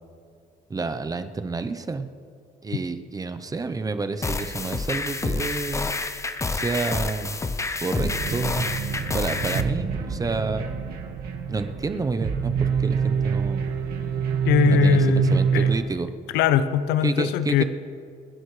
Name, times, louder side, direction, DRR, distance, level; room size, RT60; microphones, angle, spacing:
voice 1, 0.7-2.1 2.6-5.9 6.5-7.4 7.8-8.7 9.1-10.7 11.5-13.6 14.6-16.1 17.0-17.6, right 3 dB, 20° right, 10 dB, 0.8 m, -29 dB
sound 1, 4.2-9.6, left 3 dB, 15° left, 0.7 m, -28 dB
sound 2, 7.9-15.7, right 6 dB, 65° right, 2.1 m, -25 dB
voice 2, 14.4-15.7 16.3-17.6, left 9 dB, 85° left, 12 dB, 0.7 m, -21 dB
26.5 x 10.5 x 3.3 m, 2.3 s
cardioid pair, 110°, 17 cm